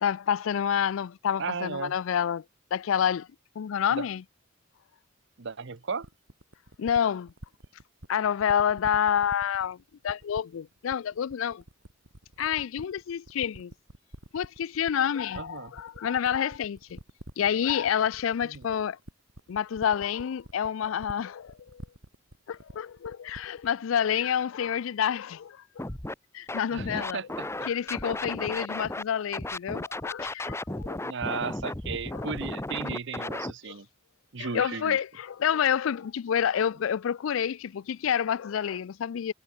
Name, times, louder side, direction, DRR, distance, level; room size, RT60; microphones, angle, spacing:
voice 1, 0.0-2.4 2.7-3.3 3.6-4.2 6.8-7.3 8.1-9.8 10.0-11.6 12.4-13.7 14.3-17.0 17.4-19.0 19.5-21.8 22.5-25.9 26.3-27.2 27.6-31.0 31.3-31.4 32.1-32.3 33.7-33.8 34.4-39.3, left 8 dB, 75° left, 0.4 m, -28 dB
voice 2, 1.4-1.9 3.9-4.1 5.4-6.1 15.4-15.7 18.5-18.6 26.7-27.5 28.4-28.6 31.0-33.9 34.3-35.0, right 5 dB, 65° right, 0.9 m, -35 dB
sound 1, 6.0-23.8, right 1 dB, 80° right, 5.0 m, -47 dB
Scratching (performance technique), 25.8-26.1 26.5-29.0 29.3-33.5, left 2 dB, 15° left, 1.1 m, -34 dB
head